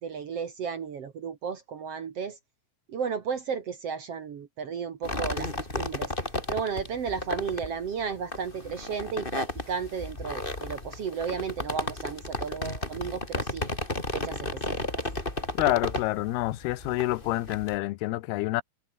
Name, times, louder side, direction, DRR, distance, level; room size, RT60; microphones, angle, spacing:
voice 1, 0.0-2.4 2.9-6.1 6.5-13.6 14.1-15.0, right 6 dB, 55° right, 2.0 m, -34 dB
sound 1, 5.0-17.8, left 2 dB, 15° left, 4.0 m, -34 dB
voice 2, 15.6-18.6, left 18 dB, 90° left, 2.8 m, -27 dB
omnidirectional pair, 4.4 m